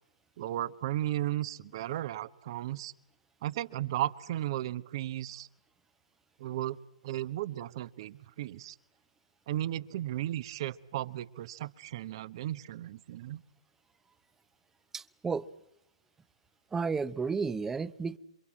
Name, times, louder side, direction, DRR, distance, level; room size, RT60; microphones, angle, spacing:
voice 1, 0.4-2.9 3.4-5.5 6.4-8.8 9.5-13.4, right 13 dB, 50° right, 16 dB, 1.2 m, -35 dB
voice 2, 14.9-15.5 16.7-18.2, right 5 dB, 10° right, 16 dB, 0.9 m, -32 dB
28.0 x 24.5 x 7.5 m, 0.80 s
hypercardioid pair, 125°, 3 cm